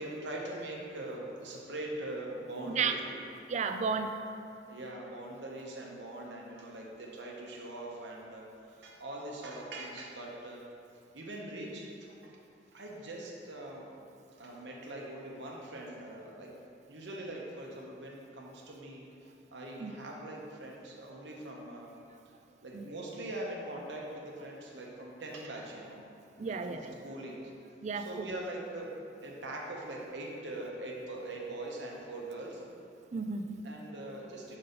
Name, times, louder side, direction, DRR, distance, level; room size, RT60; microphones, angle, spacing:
voice 1, 0.0-3.3 4.7-10.6 11.1-12.4 12.7-13.9 14.4-16.5 16.9-22.0 22.6-26.0 26.4-27.4 27.9-28.9 29.2-32.6 33.6-34.6, right 1 dB, 85° right, -2 dB, 1.0 m, -42 dB
voice 2, 3.5-4.1 19.8-19.9 22.7-22.8 26.4-26.9 27.8-28.3 33.1-33.6, right 5 dB, 40° right, 7 dB, 0.3 m, -33 dB
5.6 x 4.1 x 5.2 m, 2.6 s
head